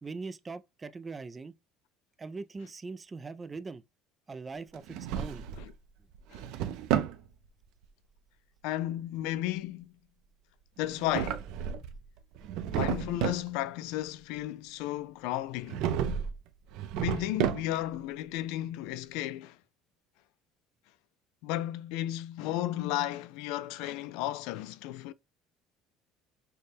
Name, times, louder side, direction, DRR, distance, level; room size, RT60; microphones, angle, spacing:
voice 1, 0.0-1.5 2.2-3.8 4.3-5.4, right 4 dB, 20° right, 0.3 m, -41 dB
Drawer open or close, 4.7-5.7 6.1-7.2 10.8-12.0 12.4-13.5 15.7-16.4 16.7-18.0, right 9 dB, 70° right, 0.5 m, -32 dB
voice 2, 8.6-9.9 10.8-11.4 12.7-15.8 17.0-19.6 21.4-25.1, left 14 dB, 80° left, 0.3 m, -34 dB
6.5 x 2.2 x 3.4 m
cardioid pair, 140°, 0 cm